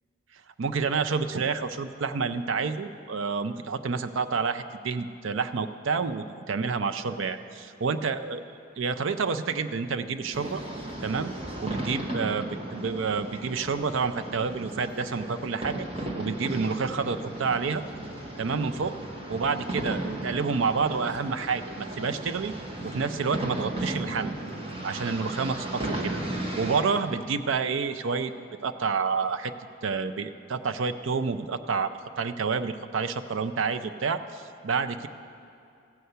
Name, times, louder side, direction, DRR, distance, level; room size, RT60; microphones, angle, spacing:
voice 1, 0.6-8.4 8.8-10.6 11.0-11.3 11.6-15.8 16.2-17.8 18.4-18.9 19.3-22.5 22.8-24.4 24.8-26.2 26.6-28.3 28.6-29.5 29.8-31.9 32.2-35.1, right 5 dB, 75° right, 10 dB, 0.5 m, -29 dB
sound 1, 10.3-26.8, right 1 dB, 30° right, 1.3 m, -35 dB
15.0 x 5.6 x 8.0 m, 2.5 s
head